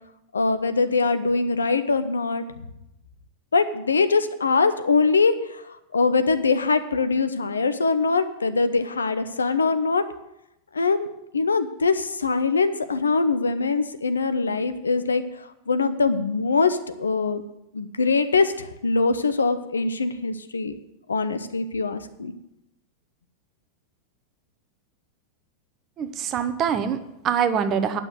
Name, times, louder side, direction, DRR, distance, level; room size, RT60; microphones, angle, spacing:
voice 1, 0.3-2.4 3.5-5.3 5.9-10.0 10.7-11.1 11.3-15.2 15.7-17.4 17.7-20.7 21.1-22.3, left 4 dB, 75° left, 11 dB, 0.7 m, -22 dB
voice 2, 26.0-28.0, right 7 dB, 30° right, 10 dB, 0.9 m, -24 dB
9.8 x 6.1 x 7.8 m, 0.85 s
figure-of-eight pair, 90°, 0 cm